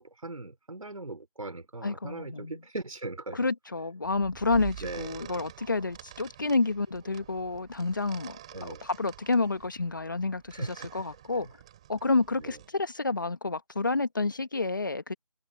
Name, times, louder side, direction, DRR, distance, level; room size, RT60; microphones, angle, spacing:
voice 1, 0.0-3.4 4.8-5.1 8.5-8.8 10.5-10.9 11.3-11.5 12.4-12.6, right 2 dB, 65° right, 4.9 m, -39 dB
voice 2, 1.8-2.6 3.3-11.5 11.9-15.1, left 3 dB, 30° left, 1.6 m, -29 dB
sound 1, 4.0-12.7, right 12 dB, 10° right, 5.8 m, -47 dB
figure-of-eight pair, 180°, 19 cm